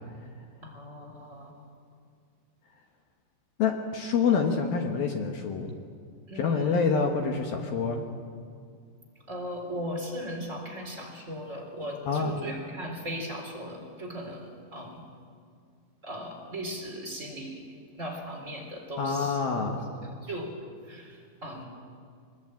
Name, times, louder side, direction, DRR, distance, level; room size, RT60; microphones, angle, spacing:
voice 1, 0.6-1.5 6.3-6.8 9.3-15.0 16.0-17.6 18.0-19.8 20.0-20.5 20.9-21.6, equal, 15° right, 0 dB, 3.3 m, -38 dB
voice 2, 3.6-5.7 6.4-8.0 12.1-12.3 19.0-19.8, left 5 dB, 65° left, 3 dB, 2.5 m, -27 dB
24.0 x 21.0 x 9.1 m, 2.2 s
omnidirectional pair, 5.8 m